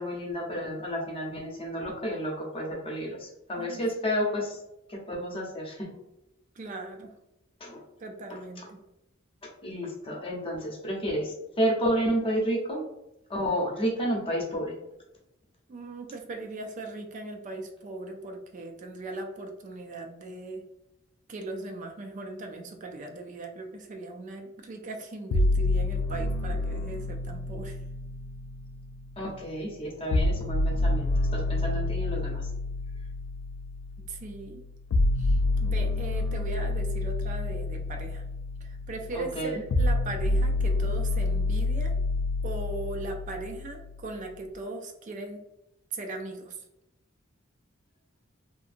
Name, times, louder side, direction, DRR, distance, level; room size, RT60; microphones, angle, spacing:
voice 1, 0.0-4.6 4.9-5.9 7.6-7.8 8.3-8.7 9.6-12.8 13.3-14.7 29.2-32.4 39.1-39.6, equal, 30° left, -2 dB, 0.7 m, -31 dB
voice 2, 6.6-7.1 8.0-8.8 15.7-20.7 21.3-27.8 34.1-34.6 35.2-38.2 38.6-42.0 42.4-45.4 45.9-46.6, right 2 dB, 40° right, 3 dB, 0.3 m, -39 dB
sound 1, 25.3-29.3 30.1-44.1, left 2 dB, 85° left, 0.3 m, -28 dB
2.7 x 2.5 x 2.5 m, 0.89 s
head